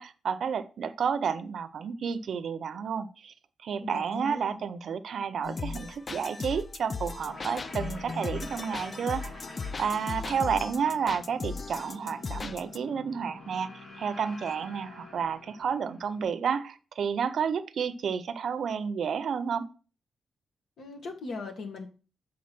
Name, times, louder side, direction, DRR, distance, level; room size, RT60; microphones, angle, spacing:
voice 1, 0.0-3.3 3.6-9.3 9.8-13.7 14.0-19.6, right 6 dB, 65° right, 11 dB, 0.5 m, -31 dB
voice 2, 3.8-4.6 20.8-21.9, left 3 dB, 70° left, 4 dB, 1.5 m, -39 dB
sound 1, 5.4-12.8, left 4 dB, 30° left, 0.3 m, -37 dB
sound 2, 7.3-16.2, left 3 dB, 55° left, 2.4 m, -47 dB
7.5 x 3.8 x 5.9 m, 0.35 s
wide cardioid pair, 135°, 0 cm